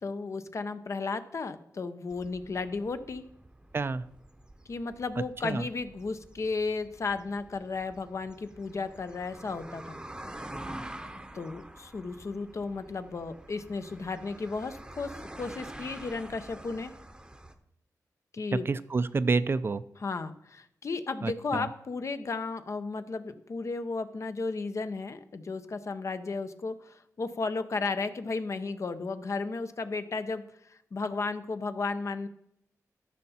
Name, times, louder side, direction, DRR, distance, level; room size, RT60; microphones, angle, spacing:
voice 1, 0.0-3.2 4.7-10.0 11.3-16.9 18.3-18.7 20.0-32.3, left 4 dB, 50° left, 10 dB, 0.7 m, -34 dB
sound 1, 2.1-17.5, right 1 dB, 10° right, 0.8 m, -47 dB
voice 2, 3.7-4.1 5.4-5.7 18.7-19.8 21.2-21.7, right 4 dB, 40° right, 15 dB, 0.4 m, -28 dB
13.5 x 5.7 x 4.2 m, 0.76 s
wide cardioid pair, 100°, 6 cm